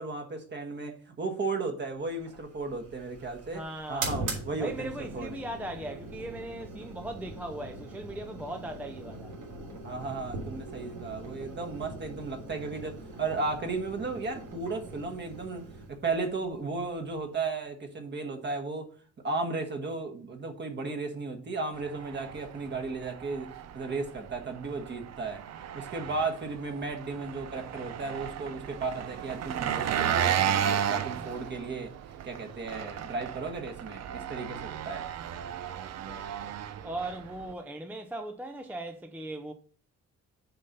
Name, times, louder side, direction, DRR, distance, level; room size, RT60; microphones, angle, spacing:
voice 1, 0.0-3.6 3.9-4.9 5.1-5.3 9.8-18.9 19.2-25.4 25.7-31.9 32.2-35.1, right 3 dB, 35° right, 1.5 m, -35 dB
sound 1, 2.2-17.5, right 2 dB, 85° right, 3.3 m, -42 dB
voice 2, 3.5-4.3 4.6-9.3 35.4-36.5 36.8-39.5, right 1 dB, 5° right, 0.5 m, -39 dB
Engine, 21.7-37.5, right 9 dB, 60° right, 0.6 m, -34 dB
6.6 x 5.7 x 5.3 m
cardioid pair, 155°, 30 cm